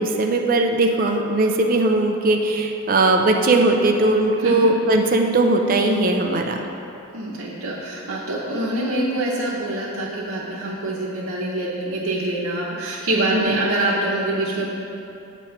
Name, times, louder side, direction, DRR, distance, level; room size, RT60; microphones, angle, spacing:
voice 1, 0.0-6.6 13.3-13.6, right 2 dB, 40° right, 3 dB, 0.4 m, -19 dB
voice 2, 7.1-14.7, right 1 dB, 70° right, -7 dB, 0.9 m, -25 dB
8.6 x 3.0 x 5.7 m, 2.9 s
head